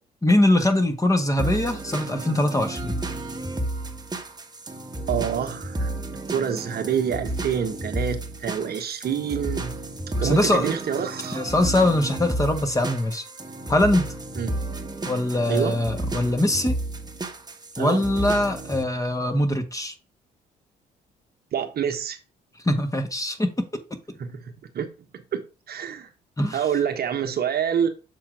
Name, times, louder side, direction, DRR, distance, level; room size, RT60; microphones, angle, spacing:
voice 1, 0.2-2.9 10.2-10.7 11.3-13.2 13.7-14.1 15.1-16.7 17.8-19.9 22.6-23.5 26.4-26.6, left 1 dB, 15° left, 1.6 m, -22 dB
sound 1, 1.4-18.8, right 2 dB, 20° right, 1.3 m, -32 dB
voice 2, 5.1-5.9 6.3-9.7 10.2-11.5 14.3-14.5 15.5-15.8 17.8-18.0 21.5-22.2 24.2-24.4 24.7-24.9 25.3-26.1 26.5-27.9, right 8 dB, 55° right, 1.2 m, -27 dB
7.0 x 3.8 x 4.7 m
hypercardioid pair, 55°, 19 cm